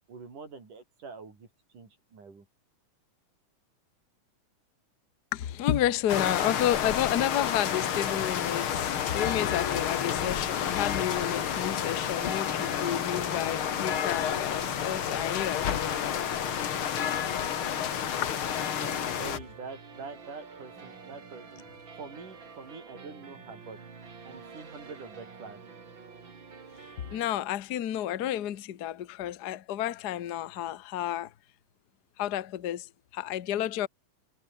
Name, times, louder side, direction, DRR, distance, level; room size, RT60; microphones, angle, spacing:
voice 1, 0.1-1.5 1.7-2.5 18.8-21.6 22.0-23.8 24.3-25.6, right 4 dB, 85° right, 7.1 m, -45 dB
voice 2, 5.3-16.3 18.2-18.3 27.1-31.3 32.2-33.9, left 11 dB, 65° left, 0.9 m, -31 dB
sound 1, 6.1-19.4, left 9 dB, 50° left, 2.0 m, -30 dB
sound 2, 9.9-27.3, right 5 dB, 40° right, 3.5 m, -48 dB
omnidirectional pair, 3.5 m